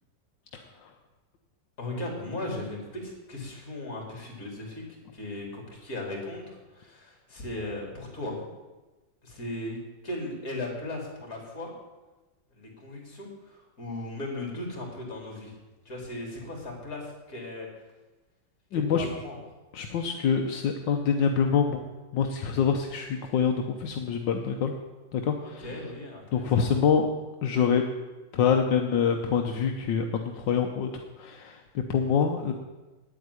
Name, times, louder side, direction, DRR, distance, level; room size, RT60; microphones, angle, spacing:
voice 1, 0.5-0.9 18.7-19.1 19.7-21.8 22.1-24.7 25.1-25.7 26.3-27.1 27.4-27.8 28.3-32.5, left 6 dB, 75° left, 4 dB, 1.6 m, -26 dB
voice 2, 1.8-8.4 9.2-9.8 10.0-11.7 12.5-15.5 15.9-17.7 18.7-19.4 25.4-26.6, left 1 dB, 50° left, 0 dB, 3.7 m, -37 dB
9.5 x 8.7 x 9.6 m, 1.2 s
omnidirectional pair, 2.0 m